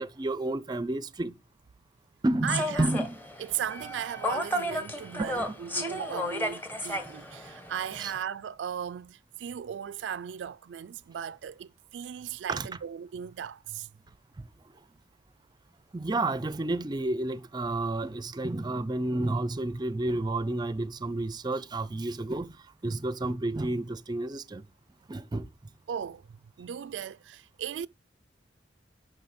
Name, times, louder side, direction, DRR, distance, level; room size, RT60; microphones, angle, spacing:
voice 1, 0.0-1.4 2.2-3.2 5.2-5.5 8.0-8.1 12.5-12.7 14.4-14.5 15.9-24.7 25.1-25.5, right 2 dB, 25° right, 0.4 m, -31 dB
voice 2, 2.4-2.9 3.4-13.9 25.9-27.9, right 8 dB, 90° right, 0.3 m, -37 dB
Human voice / Subway metro underground, 2.5-8.2, left 1 dB, 10° left, 1.1 m, -33 dB
10.5 x 3.7 x 4.2 m
head